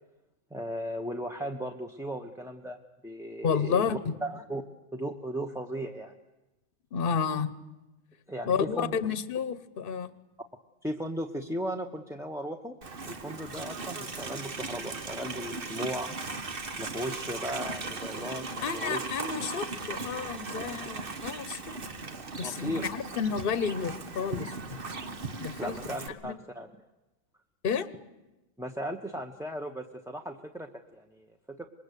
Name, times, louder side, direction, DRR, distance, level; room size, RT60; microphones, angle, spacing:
voice 1, 0.5-2.8 3.0-3.8 4.2-4.6 4.9-6.2 8.3-9.0 10.8-12.8 13.1-16.2 16.8-19.1 22.4-22.9 25.6-26.7 28.6-31.6, equal, 5° right, 2 dB, 1.0 m, -36 dB
voice 2, 3.4-4.1 6.9-7.5 8.5-10.1 18.6-21.7 22.4-24.8 25.4-25.7 26.2-26.3 27.6-27.9, left 6 dB, 50° left, 15 dB, 1.2 m, -31 dB
Livestock farm animals working animals, 12.8-26.1, right 3 dB, 45° right, 1.6 m, -38 dB
26.0 x 21.5 x 8.3 m, 1.0 s
omnidirectional pair, 1.3 m